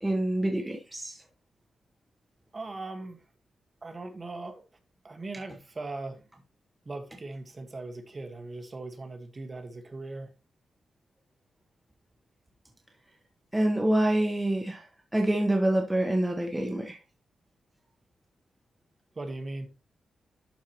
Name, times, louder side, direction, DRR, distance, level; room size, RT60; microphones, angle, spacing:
voice 1, 0.0-1.2 13.5-14.9 15.1-17.0, right 1 dB, 10° right, 1.0 m, -26 dB
voice 2, 2.5-3.2 3.8-4.6 5.0-6.2 6.8-10.3 19.1-19.7, right 2 dB, 30° right, 1.4 m, -39 dB
11.5 x 4.6 x 2.9 m
wide cardioid pair, 130°, 0 cm